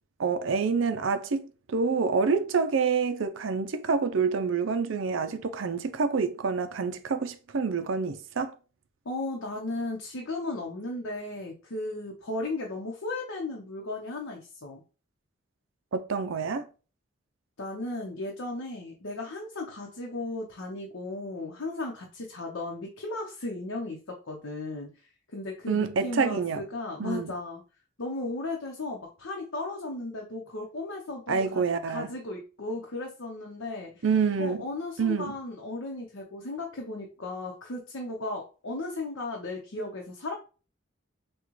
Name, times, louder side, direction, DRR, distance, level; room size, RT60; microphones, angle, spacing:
voice 1, 0.2-8.5 15.9-16.7 25.7-26.6 27.0-27.3 31.3-32.1 34.0-34.6 35.0-35.4, right 5 dB, 75° right, 0.5 m, -27 dB
voice 2, 9.0-14.8 17.6-24.9 25.3-27.6 28.0-34.0 34.4-40.3, left 2 dB, 80° left, 0.8 m, -35 dB
6.1 x 2.3 x 3.1 m
head